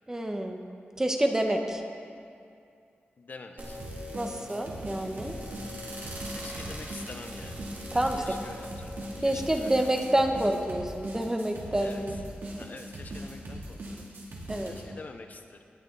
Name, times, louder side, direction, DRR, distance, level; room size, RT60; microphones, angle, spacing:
voice 1, 0.1-0.6 1.0-1.8 4.1-5.4 7.9-8.3 9.2-12.1 14.5-14.7, right 1 dB, 15° right, 3 dB, 1.0 m, -28 dB
voice 2, 3.2-3.8 6.0-7.6 8.2-9.1 9.3-9.8 11.8-12.0 12.6-14.1 14.7-15.6, left 3 dB, 45° left, 6 dB, 0.7 m, -46 dB
sound 1, 3.6-10.0, equal, 55° right, 2.9 m, -42 dB
sound 2, 3.8-14.8, right 1 dB, 90° right, 2.7 m, -40 dB
19.0 x 10.5 x 4.0 m, 2.4 s
wide cardioid pair, 130°, 4 cm